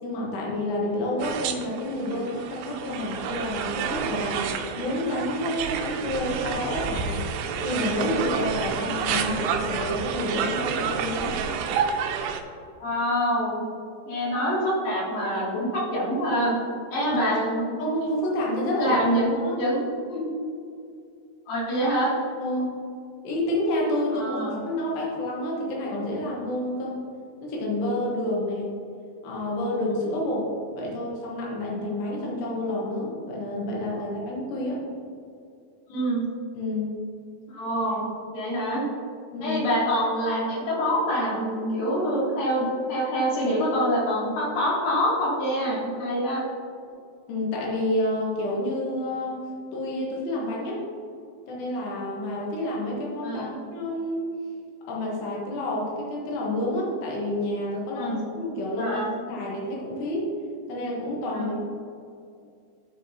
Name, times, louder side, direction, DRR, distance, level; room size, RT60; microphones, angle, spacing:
voice 1, 0.0-7.2 7.6-11.4 17.3-17.4 17.8-19.0 19.3-19.6 22.4-22.7 23.2-27.0 27.4-28.7 29.2-34.8 36.5-37.0 39.3-39.6 47.3-49.4 49.7-50.9 51.5-54.3 54.9-60.3 60.7-61.6, left 1 dB, 80° left, -3 dB, 3.4 m, -29 dB
sound 1, 1.2-12.4, right 6 dB, 85° right, 2.6 m, -29 dB
voice 2, 12.8-13.7 14.1-16.6 16.9-17.7 18.8-19.3 19.6-19.8 20.1-20.3 21.5-22.2 24.1-24.6 34.0-34.1 35.9-36.2 37.5-38.8 39.4-46.4 53.2-53.5 58.0-58.2 58.8-59.1 61.3-61.5, equal, 65° left, -6 dB, 3.0 m, -26 dB
12.0 x 4.8 x 2.8 m, 2.3 s
omnidirectional pair, 4.7 m